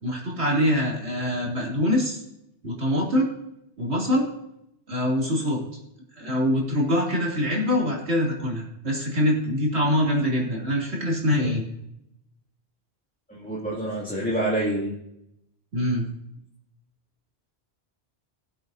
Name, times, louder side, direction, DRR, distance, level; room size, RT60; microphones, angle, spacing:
voice 1, 0.0-2.2 2.6-3.3 3.8-4.2 4.9-5.6 6.2-11.6 15.7-16.1, equal, 75° right, -2 dB, 3.2 m, -24 dB
voice 2, 13.3-14.9, right 1 dB, 5° left, -6 dB, 2.5 m, -27 dB
19.5 x 7.7 x 2.7 m, 0.80 s
omnidirectional pair, 1.1 m